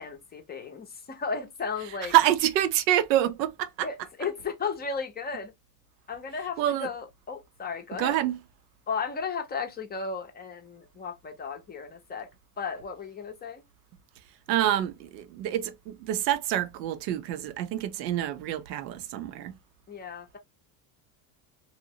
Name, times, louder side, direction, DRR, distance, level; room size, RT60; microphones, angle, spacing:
voice 1, 0.0-2.1 3.8-5.5 6.1-8.2 8.9-12.3 12.6-13.6 19.9-20.4, left 5 dB, 20° left, 0.5 m, -35 dB
voice 2, 2.1-3.9 6.6-6.9 8.0-8.4 14.5-19.5, right 12 dB, 90° right, 0.6 m, -26 dB
2.8 x 2.0 x 2.6 m
supercardioid pair, 105°, 48 cm